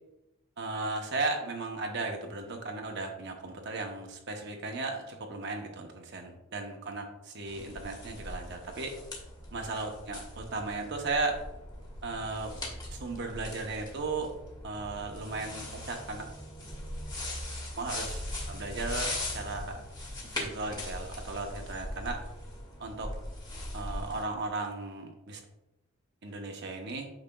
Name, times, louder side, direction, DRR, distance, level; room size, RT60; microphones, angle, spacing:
voice 1, 0.6-9.0 9.5-11.4 12.0-12.6 12.9-14.3 14.6-16.3 17.8-18.2 18.5-19.8 20.3-22.2 22.8-23.1 23.7-25.4 26.2-27.1, right 3 dB, 50° right, 2 dB, 0.7 m, -36 dB
sound 1, 7.5-24.2, left 1 dB, 20° left, 1.3 m, -40 dB
8.8 x 5.7 x 2.2 m, 0.92 s
head